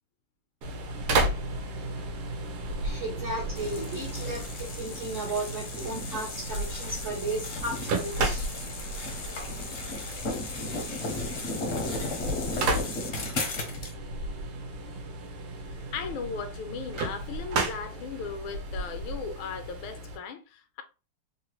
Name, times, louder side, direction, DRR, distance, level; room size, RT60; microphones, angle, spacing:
sound 1, 0.6-20.2, right 2 dB, 85° right, 1.6 m, -34 dB
voice 1, 2.8-8.5, right 2 dB, 60° right, 0.8 m, -35 dB
sound 2, 3.5-13.9, left 2 dB, 55° left, 0.8 m, -35 dB
voice 2, 15.7-20.8, left 5 dB, 80° left, 1.3 m, -37 dB
3.8 x 2.1 x 3.0 m
omnidirectional pair, 2.3 m